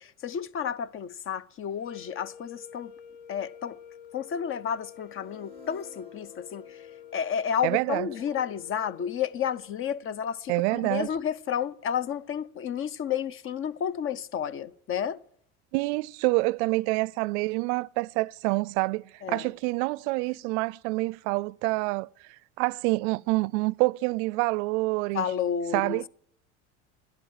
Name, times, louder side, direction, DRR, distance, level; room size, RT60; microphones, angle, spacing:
voice 1, 0.0-2.9 3.3-3.8 4.1-6.9 7.1-15.2 19.2-19.5 25.1-26.1, left 8 dB, 35° left, 0.6 m, -31 dB
sound 1, 1.7-9.9, left 9 dB, 55° left, 1.1 m, -49 dB
sound 2, 4.6-8.7, left 2 dB, 15° left, 2.3 m, -54 dB
voice 2, 7.6-8.1 10.5-11.1 15.7-22.1 22.6-25.2 25.7-26.0, right 24 dB, 80° right, 0.5 m, -27 dB
12.0 x 10.5 x 8.8 m
supercardioid pair, 105°, 35 cm